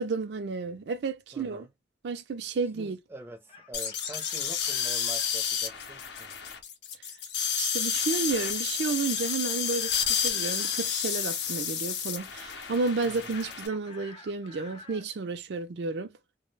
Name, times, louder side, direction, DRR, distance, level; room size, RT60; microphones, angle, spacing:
voice 1, 0.0-1.7 2.0-3.0 7.6-16.1, right 4 dB, 70° right, 0.4 m, -31 dB
voice 2, 1.3-1.7 2.7-6.3 13.0-13.4, right 1 dB, 15° right, 0.5 m, -45 dB
Chicken rooster, 3.2-5.3 9.1-10.9 13.3-15.1, left 4 dB, 30° left, 0.7 m, -49 dB
sound 1, 3.7-13.7, left 8 dB, 70° left, 0.6 m, -31 dB
2.3 x 2.1 x 3.1 m
head